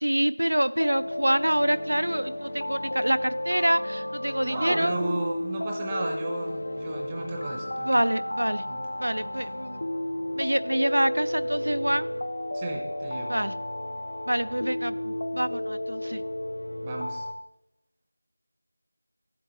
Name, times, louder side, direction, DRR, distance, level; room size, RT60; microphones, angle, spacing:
voice 1, 0.0-5.0 7.8-8.6 9.0-9.8 10.4-12.1 13.3-13.5 14.3-16.2, right 1 dB, 85° right, 14 dB, 0.4 m, -26 dB
sound 1, 0.8-17.3, left 1 dB, 60° left, 0.8 m, -33 dB
voice 2, 4.4-8.0 8.7-8.8 9.2-9.3 12.5-13.4 16.8-17.2, right 2 dB, 10° right, -1 dB, 0.6 m, -34 dB
11.0 x 7.9 x 3.0 m, 0.88 s
figure-of-eight pair, 175°, 0 cm